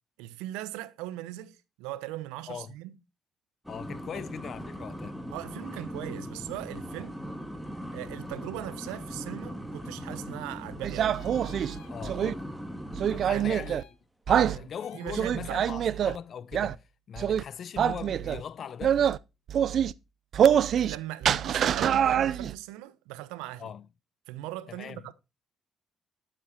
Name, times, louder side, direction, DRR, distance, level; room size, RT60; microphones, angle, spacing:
voice 1, 0.2-3.0 4.1-4.2 5.3-7.2 7.9-11.2 13.3-13.5 14.5-14.7 14.9-15.7 20.8-23.7 24.3-25.1, right 15 dB, 85° right, 0.8 m, -39 dB
sound 1, 3.6-13.7, equal, ahead, 2.5 m, -40 dB
voice 2, 3.7-5.2 7.0-7.1 11.9-12.4 13.1-14.0 14.3-19.0 23.6-23.9 24.7-25.0, left 8 dB, 60° left, 0.7 m, -40 dB
sound 2, 10.8-12.3 12.9-13.8 14.3-14.6 15.1-16.2 16.5-16.8 17.2-17.4 17.8-18.4 18.8-19.2 19.5-19.9 20.3-21.0 21.2-22.5, right 9 dB, 65° right, 0.5 m, -25 dB
sound 3, 11.1-12.0 13.4-14.0 14.8-15.2 16.0-16.1, left 12 dB, 85° left, 1.3 m, -54 dB
11.5 x 7.5 x 4.4 m
supercardioid pair, 60°, 0 cm